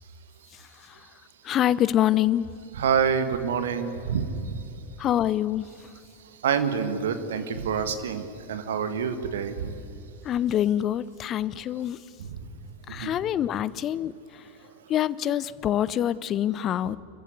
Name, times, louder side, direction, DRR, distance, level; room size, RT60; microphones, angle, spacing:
voice 1, 1.4-2.5 5.0-5.7 10.2-12.0 12.9-14.1 14.9-17.0, left 11 dB, 30° left, 19 dB, 0.6 m, -25 dB
voice 2, 2.7-4.7 6.4-9.7 12.2-12.5 12.9-13.1, right 7 dB, 60° right, 10 dB, 1.8 m, -27 dB
28.5 x 15.0 x 9.7 m, 2.8 s
figure-of-eight pair, 90°, 0 cm